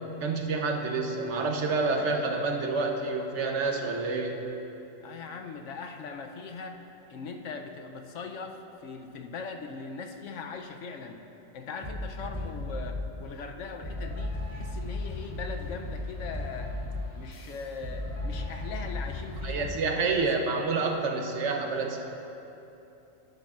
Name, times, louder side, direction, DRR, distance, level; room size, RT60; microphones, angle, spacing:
voice 1, 0.2-4.3 19.4-22.0, right 3 dB, 65° right, 2 dB, 1.0 m, -28 dB
voice 2, 5.0-6.8 7.1-11.2 11.5-16.7 17.2-20.3, left 5 dB, 70° left, 5 dB, 0.9 m, -40 dB
sound 1, 11.8-13.1 13.8-19.8, left 2 dB, 25° left, 1.8 m, -35 dB
11.5 x 10.5 x 2.4 m, 2.9 s
omnidirectional pair, 1.4 m